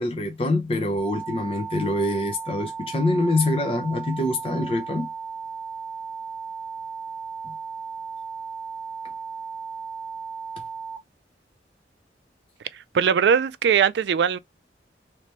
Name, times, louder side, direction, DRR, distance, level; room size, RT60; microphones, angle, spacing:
voice 1, 0.0-5.1 7.4-7.5, left 1 dB, 30° left, 0.6 m, -25 dB
sound 1, 1.0-11.0, right 5 dB, 15° left, 1.5 m, -35 dB
voice 2, 12.7-14.4, right 7 dB, 70° right, 0.3 m, -20 dB
3.3 x 3.0 x 3.0 m
head